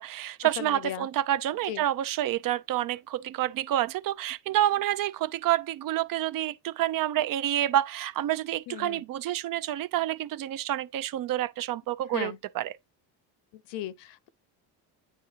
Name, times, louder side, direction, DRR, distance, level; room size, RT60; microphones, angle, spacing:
voice 1, 0.0-12.8, right 13 dB, 50° right, 0.6 m, -28 dB
voice 2, 0.6-1.1 1.7-1.8 8.7-9.0 12.1-12.4 13.7-14.3, left 13 dB, 80° left, 0.8 m, -36 dB
9.3 x 3.6 x 2.8 m
cardioid pair, 110°, 42 cm